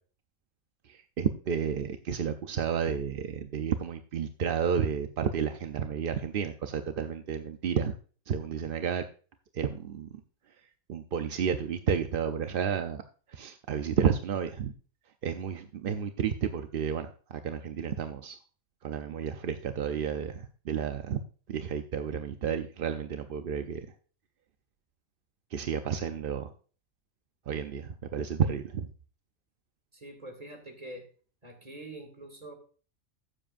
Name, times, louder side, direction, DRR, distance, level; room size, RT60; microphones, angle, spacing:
voice 1, 0.8-7.9 8.3-9.0 9.5-10.1 10.9-13.0 13.3-14.7 15.2-18.4 18.8-21.2 21.5-23.9 25.5-26.5 27.5-28.9, right 7 dB, 55° right, 7 dB, 0.6 m, -31 dB
voice 2, 29.9-31.1 31.4-32.5, right 1 dB, 25° right, 4 dB, 2.2 m, -45 dB
14.5 x 7.5 x 2.5 m, 0.40 s
omnidirectional pair, 1.4 m